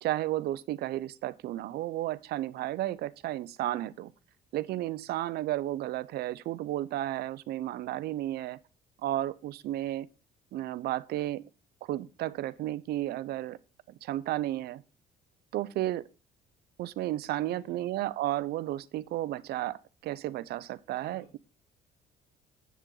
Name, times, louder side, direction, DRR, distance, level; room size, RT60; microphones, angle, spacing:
voice 1, 0.0-4.1 4.5-8.6 9.0-10.1 10.5-11.4 11.8-13.6 13.9-14.8 15.5-16.0 16.8-21.4, right 14 dB, 70° right, 0.6 m, -33 dB
voice 2, 17.4-17.9 21.0-21.4, left 4 dB, 70° left, 5.1 m, -55 dB
8.1 x 7.4 x 3.9 m
cardioid pair, 110°, 17 cm